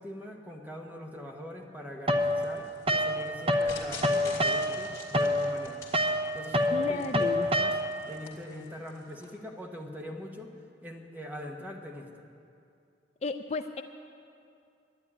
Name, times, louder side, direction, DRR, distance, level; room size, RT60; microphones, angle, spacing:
voice 1, 0.0-5.8 6.3-7.8 8.1-10.5 10.8-12.3, left 1 dB, 10° right, 1 dB, 1.2 m, -42 dB
sound 1, 2.1-3.7 4.0-8.1, left 1 dB, 30° right, 0.8 m, -27 dB
sound 2, 2.2-9.4, left 4 dB, 15° left, 2.4 m, -48 dB
voice 2, 6.7-7.5 13.2-13.8, left 3 dB, 35° left, 8 dB, 0.4 m, -33 dB
11.0 x 11.0 x 9.7 m, 2.5 s
head